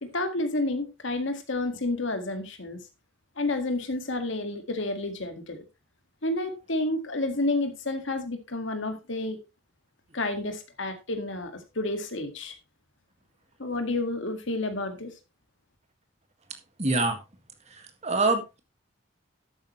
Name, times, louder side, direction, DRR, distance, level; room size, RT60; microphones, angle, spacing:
voice 1, 0.0-2.8 3.4-5.6 6.2-9.4 10.1-12.6 13.6-15.1, left 2 dB, 65° left, 7 dB, 1.9 m, -30 dB
voice 2, 16.8-17.2 18.0-18.6, right 3 dB, 35° right, 6 dB, 1.9 m, -24 dB
12.0 x 8.9 x 3.1 m, 0.26 s
head